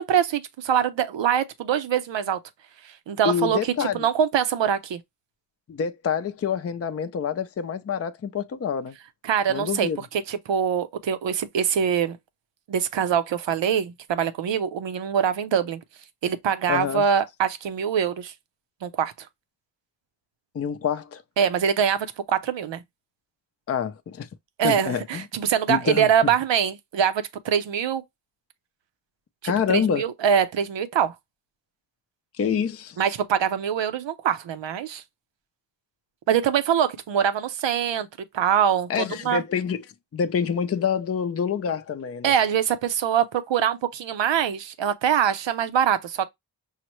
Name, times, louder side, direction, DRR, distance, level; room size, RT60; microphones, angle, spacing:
voice 1, 0.0-2.4 3.1-5.0 9.2-9.9 10.3-12.2 12.7-15.8 16.2-18.3 18.8-19.1 21.4-22.8 24.6-28.0 29.4-31.1 33.0-35.0 36.3-38.1 38.3-39.4 42.2-46.3, right 8 dB, 90° right, 0.7 m, -24 dB
voice 2, 3.2-4.1 5.7-8.9 9.5-10.0 16.7-17.0 20.5-21.2 23.7-24.3 24.6-25.2 25.7-26.3 29.4-30.1 32.4-33.0 38.9-39.8 40.1-42.3, left 7 dB, 35° left, 0.5 m, -26 dB
5.6 x 2.1 x 3.0 m
wide cardioid pair, 75°, 43 cm